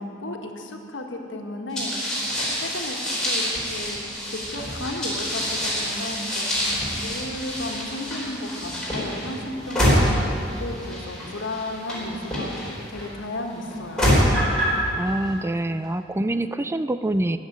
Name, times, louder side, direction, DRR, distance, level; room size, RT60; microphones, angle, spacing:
voice 1, 0.0-3.0 3.2-4.0 4.3-10.1 10.6-12.5 12.9-14.1, left 1 dB, 90° left, 3 dB, 1.6 m, -34 dB
sound 1, 1.8-13.0 13.7-14.8, equal, 5° left, 4.5 m, -26 dB
voice 2, 15.0-17.4, right 1 dB, 15° right, 11 dB, 0.3 m, -25 dB
15.0 x 7.4 x 10.0 m, 2.6 s
head